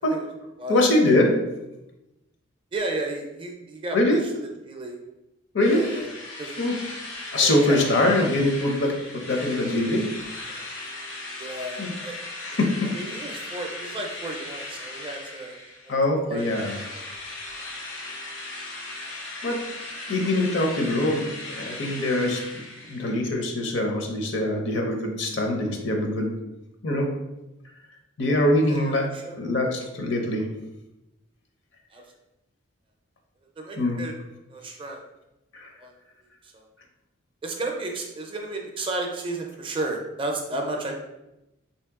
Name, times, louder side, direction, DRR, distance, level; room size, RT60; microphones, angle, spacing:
voice 1, 0.7-1.4 3.9-4.2 5.5-5.8 6.6-6.7 7.3-10.7 11.8-11.9 12.4-12.7 15.9-16.7 19.4-19.6 20.1-22.6 22.9-26.3 26.8-27.1 28.2-29.1 29.4-30.4 33.8-34.0 35.5-35.7, left 1 dB, 60° left, 2 dB, 0.7 m, -23 dB
voice 2, 2.7-4.2 4.7-5.0 5.7-6.1 6.4-6.6 7.3-8.3 11.4-12.2 12.8-15.5 15.8-17.1 20.3-20.5 28.7-29.4 31.9-32.0 33.6-34.1 34.5-35.0 35.8-35.9 36.4-36.6 37.4-40.9, right 2 dB, 25° right, 2 dB, 0.4 m, -33 dB
Drill, 5.6-16.0 16.4-23.3, left 2 dB, 90° left, 0.9 m, -37 dB
3.1 x 2.8 x 3.5 m, 0.94 s
head